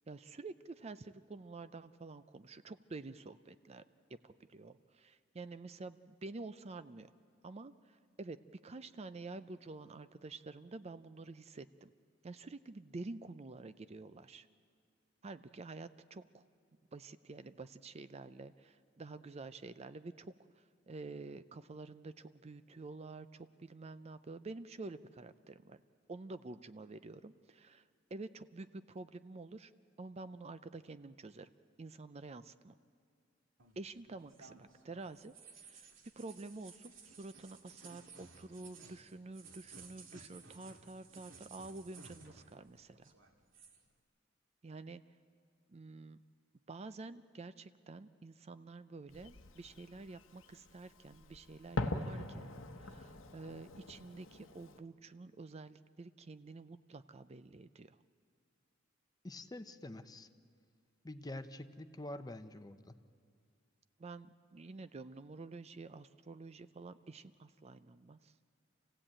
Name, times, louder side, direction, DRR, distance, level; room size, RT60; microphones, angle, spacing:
voice 1, 0.1-3.8 4.1-7.1 7.4-11.9 12.2-14.5 15.2-16.4 16.9-25.8 26.1-27.8 28.1-29.7 30.0-31.5 31.8-32.8 33.8-35.9 36.2-43.1 44.6-45.0 45.7-46.2 46.7-58.0 64.0-68.3, right 3 dB, 35° right, 12 dB, 0.5 m, -49 dB
sound 1, 33.6-42.7 42.9-43.8, right 4 dB, 80° right, 2.1 m, -57 dB
Fireworks, 49.1-54.8, left 2 dB, 85° left, 1.2 m, -43 dB
voice 2, 59.2-60.3 61.0-63.0, left 1 dB, 20° left, 10 dB, 0.7 m, -46 dB
27.5 x 16.0 x 8.8 m, 2.2 s
head